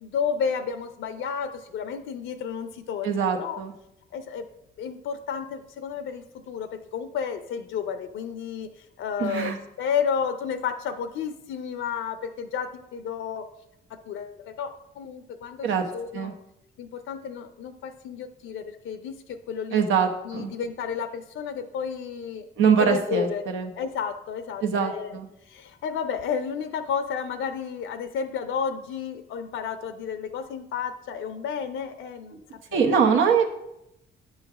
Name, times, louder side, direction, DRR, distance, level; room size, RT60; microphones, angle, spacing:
voice 1, 0.0-3.6 4.1-4.4 4.8-8.7 9.0-13.5 13.9-14.7 15.0-15.7 15.9-16.4 16.8-19.8 20.2-22.4 22.8-23.4 23.8-25.2 25.5-32.4 32.7-33.0, left 7 dB, 80° left, 8 dB, 0.6 m, -31 dB
voice 2, 3.0-3.7 9.2-9.6 15.6-15.8 16.1-16.3 19.7-20.5 22.6-23.7 24.6-25.3 32.7-33.5, right 6 dB, 80° right, 4 dB, 1.0 m, -23 dB
8.9 x 3.2 x 5.8 m, 0.83 s
cardioid pair, 90°, 20 cm